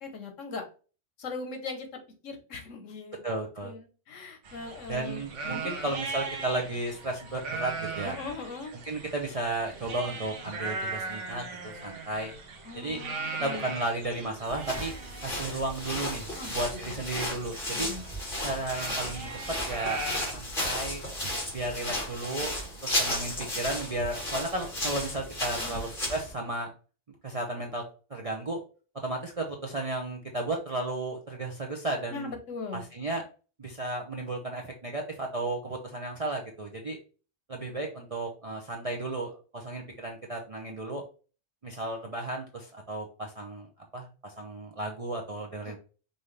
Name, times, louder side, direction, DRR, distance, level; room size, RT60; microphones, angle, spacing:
voice 1, 0.0-0.6 1.2-1.9 2.2-3.2 3.6-5.7 8.0-8.7 12.6-13.7 16.3-17.0 17.7-18.0 25.6-25.9 32.1-32.8 45.7-45.8, left 3 dB, 85° left, 5 dB, 1.3 m, -40 dB
voice 2, 3.2-3.7 4.9-8.2 8.8-12.3 12.7-13.0 13.4-14.9 15.2-17.9 18.4-19.3 19.7-20.0 20.3-21.0 21.5-22.5 22.8-26.7 27.2-27.8 28.1-28.6 29.0-32.3 32.7-33.2 33.6-37.0 37.5-41.0 41.6-43.7 43.9-45.8, right 2 dB, 40° right, 0 dB, 0.6 m, -34 dB
sound 1, 4.4-20.3, right 3 dB, 75° right, 1.2 m, -39 dB
sound 2, 14.5-26.3, left 1 dB, 45° left, 2.1 m, -34 dB
5.4 x 2.7 x 3.2 m, 0.36 s
omnidirectional pair, 1.3 m